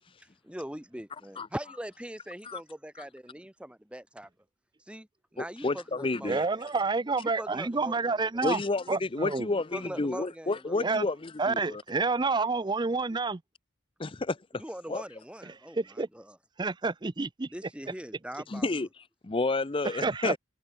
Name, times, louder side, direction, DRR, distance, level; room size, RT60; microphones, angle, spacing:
voice 1, 0.4-4.3 4.9-5.1 5.3-6.7 7.2-8.4 9.5-10.8 14.5-16.4 17.5-18.7, equal, 5° right, 2.6 m, -42 dB
voice 2, 5.6-6.4 8.4-11.8 14.0-14.6 14.9-15.0 18.5-18.9 19.2-20.4, left 3 dB, 25° left, 0.6 m, -30 dB
voice 3, 6.2-8.6 8.9-9.5 10.8-11.0 11.4-13.4 15.4-16.1 16.6-17.5 19.8-20.3, right 3 dB, 20° right, 0.5 m, -29 dB
head